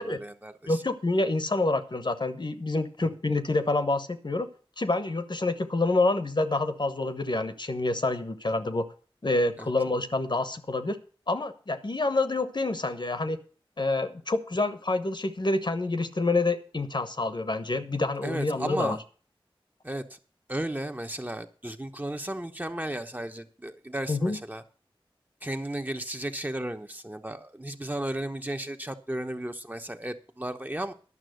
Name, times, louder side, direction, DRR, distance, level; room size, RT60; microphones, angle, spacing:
voice 1, 0.0-0.8 9.6-9.7 18.2-19.0 19.8-20.0 20.5-24.6 25.4-30.9, right 1 dB, 20° right, 6 dB, 1.1 m, -34 dB
voice 2, 0.7-4.5 4.8-8.9 9.2-11.0 11.3-13.4 13.8-19.0 24.1-24.4, left 2 dB, 50° left, 9 dB, 1.2 m, -27 dB
11.0 x 6.1 x 7.8 m, 0.39 s
wide cardioid pair, 45°, 10 cm